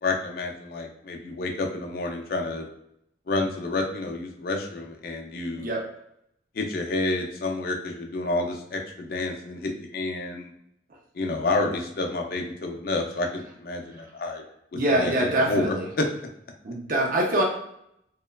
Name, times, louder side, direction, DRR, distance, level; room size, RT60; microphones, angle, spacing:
voice 1, 0.0-2.7 3.3-5.7 6.5-10.5 11.1-14.4 14.7-16.0, left 2 dB, 55° left, 2 dB, 0.4 m, -29 dB
voice 2, 14.7-15.9 16.6-17.4, right 1 dB, 50° right, -1 dB, 0.4 m, -24 dB
2.9 x 2.2 x 2.2 m, 0.76 s
head